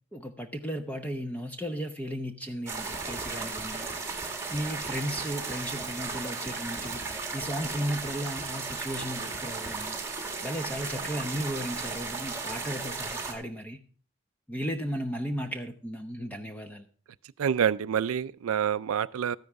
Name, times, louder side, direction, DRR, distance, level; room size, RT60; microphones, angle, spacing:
voice 1, 0.1-3.9 4.5-10.0 10.4-13.8 14.5-16.9, equal, 5° left, 0.8 m, -35 dB
sound 1, 2.7-13.3, right 4 dB, 15° right, 2.1 m, -35 dB
voice 2, 17.4-19.4, right 8 dB, 85° right, 0.4 m, -27 dB
13.5 x 10.5 x 3.5 m
head